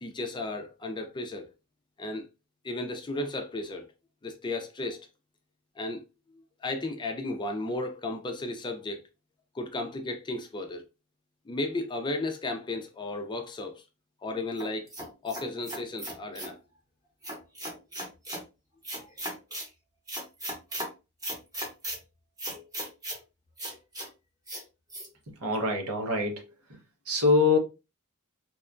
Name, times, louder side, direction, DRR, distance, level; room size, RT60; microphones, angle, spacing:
voice 1, 0.0-1.5 2.0-2.3 2.6-3.9 4.2-5.1 5.8-6.0 6.6-9.0 9.5-10.8 11.5-13.8 14.2-14.9 15.2-16.6 19.0-19.1, left 2 dB, 20° left, 0.4 m, -34 dB
sound 1, 14.6-16.6 17.2-18.4 18.8-19.7 20.1-20.9 21.2-22.0 22.4-23.2 23.6-24.1 24.5-24.6 24.9-25.1, right 1 dB, 15° right, 0.9 m, -37 dB
voice 2, 25.4-26.4 27.1-27.6, left 3 dB, 85° right, 0.9 m, -24 dB
2.8 x 2.2 x 2.4 m
head